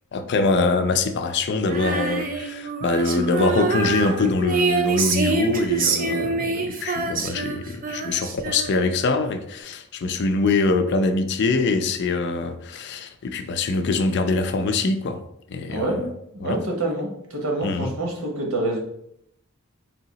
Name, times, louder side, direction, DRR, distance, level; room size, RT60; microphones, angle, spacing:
voice 1, 0.1-15.2 15.5-16.0 16.4-16.6 17.6-17.9, left 3 dB, 55° left, 8 dB, 0.4 m, -23 dB
Female singing, 1.7-9.0, right 4 dB, 40° right, 0.5 m, -26 dB
voice 2, 15.7-18.8, right 1 dB, 80° right, 1 dB, 1.0 m, -27 dB
3.4 x 2.8 x 4.0 m, 0.76 s
head